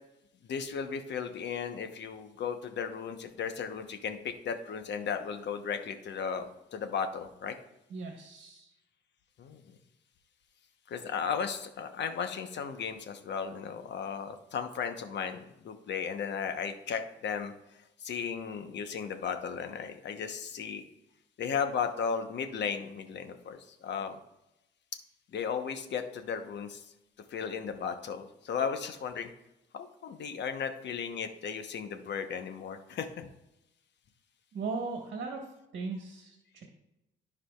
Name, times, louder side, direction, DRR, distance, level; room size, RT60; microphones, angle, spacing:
voice 1, 0.4-7.5 9.4-9.6 10.9-17.5 18.0-20.8 21.4-24.2 25.3-26.8 27.3-29.3 29.7-33.3, left 6 dB, 60° left, 7 dB, 1.0 m, -35 dB
voice 2, 7.9-8.7 34.5-35.4 35.7-36.6, right 4 dB, 60° right, 2 dB, 1.5 m, -38 dB
14.5 x 4.9 x 2.4 m, 0.89 s
cardioid pair, 90°, 20 cm